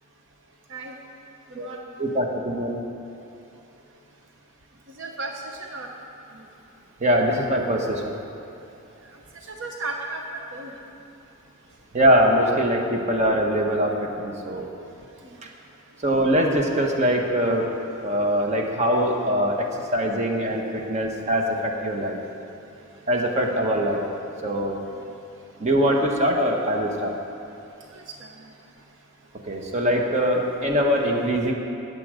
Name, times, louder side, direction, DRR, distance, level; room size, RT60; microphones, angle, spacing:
voice 1, 2.0-2.8 7.0-8.2 11.9-14.7 16.0-17.6 18.0-19.7 19.9-22.2 23.1-24.0 24.4-24.8 25.6-27.1 29.5-31.5, equal, 30° right, 1 dB, 1.2 m, -22 dB
voice 2, 4.9-5.9 9.5-10.2 10.5-10.7 15.2-15.4 24.9-25.0 27.9-28.3, right 3 dB, 60° right, 1 dB, 0.8 m, -35 dB
14.0 x 9.4 x 5.0 m, 2.8 s
head